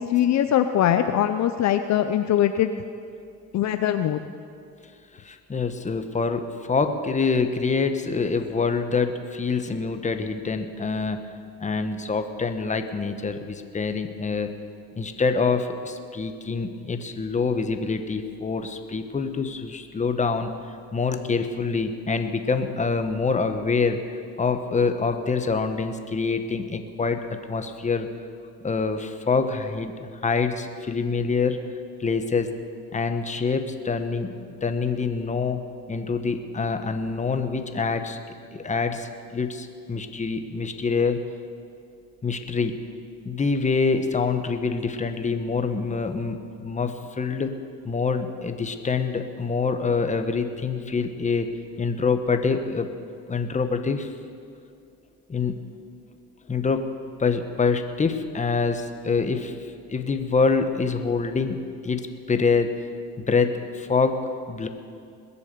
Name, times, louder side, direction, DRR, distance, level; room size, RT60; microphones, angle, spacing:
voice 1, 0.0-2.7 3.5-4.2, left 11 dB, 55° left, 9 dB, 0.6 m, -22 dB
voice 2, 5.1-11.2 11.6-14.5 15.0-20.5 20.9-24.0 24.4-28.1 28.6-31.6 32.0-32.5 32.9-34.3 34.6-35.6 35.9-38.2 38.5-41.2 42.2-42.8 43.2-47.5 47.8-51.5 51.8-52.9 53.3-54.1 55.3-55.6 56.5-56.9 57.2-59.6 59.9-62.7 63.2-64.2 64.5-64.7, left 4 dB, 20° left, 7 dB, 1.1 m, -25 dB
21.0 x 7.0 x 6.9 m, 2.4 s
supercardioid pair, 90°, 33 cm